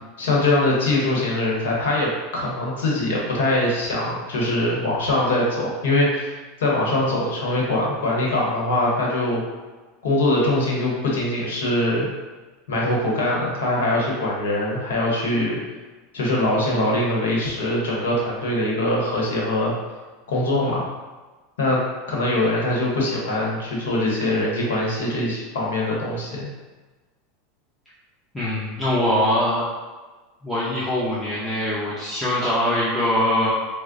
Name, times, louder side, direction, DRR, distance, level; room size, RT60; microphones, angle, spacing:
voice 1, 0.2-9.4 10.0-12.1 12.7-15.6 16.1-19.7 20.3-20.8 21.6-21.8 22.1-26.5, left 1 dB, 90° left, -3 dB, 0.9 m, -22 dB
voice 2, 28.3-29.6 30.4-33.5, left 1 dB, 5° left, -10 dB, 0.7 m, -22 dB
4.4 x 2.0 x 2.5 m, 1.3 s
supercardioid pair, 120°, 0 cm